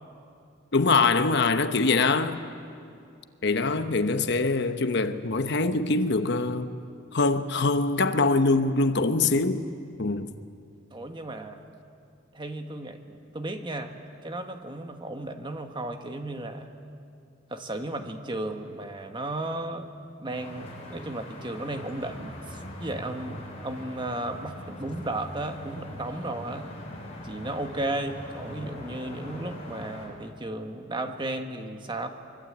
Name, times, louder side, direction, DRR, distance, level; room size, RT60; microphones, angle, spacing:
voice 1, 0.7-2.4 3.4-6.7 7.1-9.7 10.0-10.3, left 3 dB, 60° left, 1.0 m, -23 dB
voice 2, 10.9-11.6 12.3-13.9 14.2-16.7 17.5-19.9 20.2-26.7 27.2-32.1, right 1 dB, 25° right, 1.5 m, -34 dB
sound 1, 20.3-30.1, left 1 dB, 35° left, 6.3 m, -41 dB
24.0 x 23.5 x 8.7 m
head